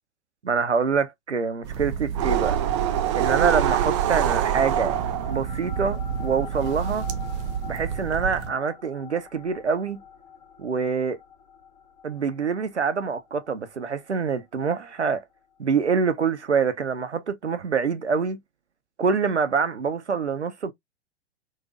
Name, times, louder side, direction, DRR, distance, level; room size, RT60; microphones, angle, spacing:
voice 1, 0.4-2.6 3.1-5.0 5.3-7.1 7.6-10.0 10.6-11.2 12.0-15.2 15.6-18.4 19.0-20.7, right 5 dB, 80° right, 0.7 m, -25 dB
sound 1, 1.6-8.5, right 10 dB, 25° right, 0.5 m, -26 dB
sound 2, 4.6-15.4, left 7 dB, 35° left, 1.3 m, -45 dB
4.0 x 2.5 x 2.4 m
figure-of-eight pair, 105°, 34 cm